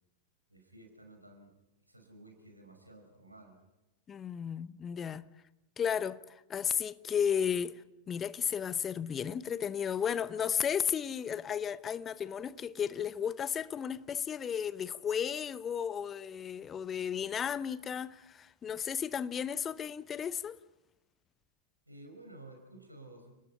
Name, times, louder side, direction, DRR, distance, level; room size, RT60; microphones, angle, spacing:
voice 1, 0.5-1.5 1.9-3.6 21.9-23.3, right 2 dB, 85° right, 5.3 m, -53 dB
voice 2, 4.1-5.3 5.8-6.2 6.5-7.8 8.1-20.6, left 8 dB, 25° left, 0.7 m, -34 dB
29.5 x 20.0 x 5.6 m
figure-of-eight pair, 90°, 0 cm